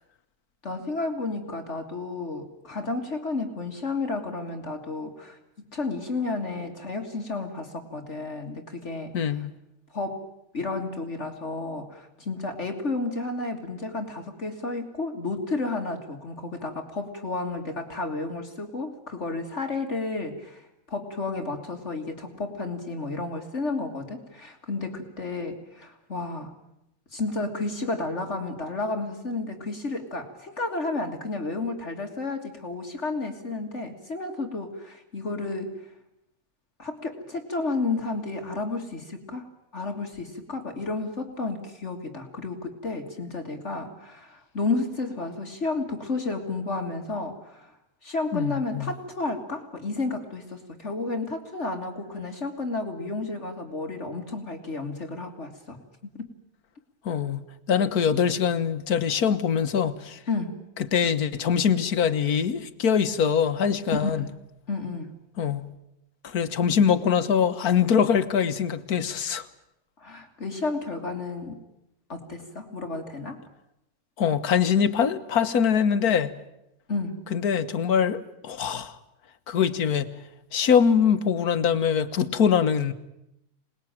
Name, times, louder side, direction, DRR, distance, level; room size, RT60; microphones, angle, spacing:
voice 1, 0.6-5.4 5.7-9.1 9.9-10.3 10.5-26.5 27.1-35.9 36.8-47.8 48.0-55.8 56.2-56.3 60.3-60.6 63.9-64.3 64.7-65.2 70.0-71.6 72.1-73.4 76.9-77.3, left 3 dB, 50° left, 2.3 m, -32 dB
voice 2, 9.1-9.5 48.3-48.9 57.1-57.4 57.7-60.2 60.9-64.3 65.4-65.7 66.2-69.5 74.2-76.4 77.3-79.0 79.5-80.1 80.5-82.9, left 7 dB, 85° left, 1.7 m, -23 dB
27.0 x 20.0 x 8.9 m
omnidirectional pair, 1.5 m